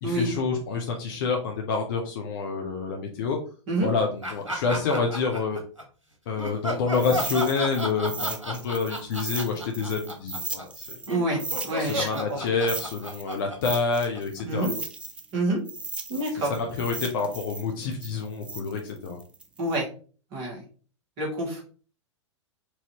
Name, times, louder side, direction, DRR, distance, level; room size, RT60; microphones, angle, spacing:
voice 1, 0.0-3.4 3.8-5.6 6.3-10.9 11.8-14.7 16.4-19.2, left 4 dB, 45° left, 2 dB, 0.7 m, -28 dB
sound 1, 4.2-5.8 6.4-14.6, equal, 85° right, 1.0 m, -33 dB
sound 2, 6.9-11.1 11.4-15.3 15.7-19.8, right 3 dB, 5° right, 0.3 m, -36 dB
voice 2, 11.1-11.4 11.7-12.4 14.4-14.7 15.3-15.6 16.1-16.5 19.6-19.9 20.3-20.6 21.2-21.6, right 1 dB, 35° right, -2 dB, 2.0 m, -27 dB
4.6 x 2.8 x 2.9 m, 0.40 s
figure-of-eight pair, 100°, 16 cm